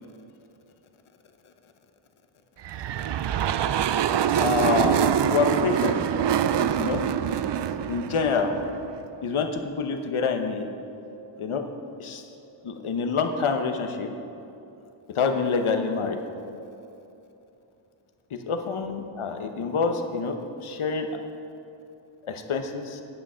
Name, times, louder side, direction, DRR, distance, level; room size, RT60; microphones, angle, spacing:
sound 1, 2.6-9.1, right 9 dB, 60° right, 0.5 m, -25 dB
voice 1, 4.4-6.0 6.6-7.0 7.9-8.6 9.2-10.7 11.4-11.7 12.0-12.2 12.6-14.1 15.1-16.2 18.3-21.1 22.3-23.0, left 5 dB, 80° left, 6 dB, 1.0 m, -27 dB
10.0 x 8.8 x 5.6 m, 2.8 s
wide cardioid pair, 75°, 49 cm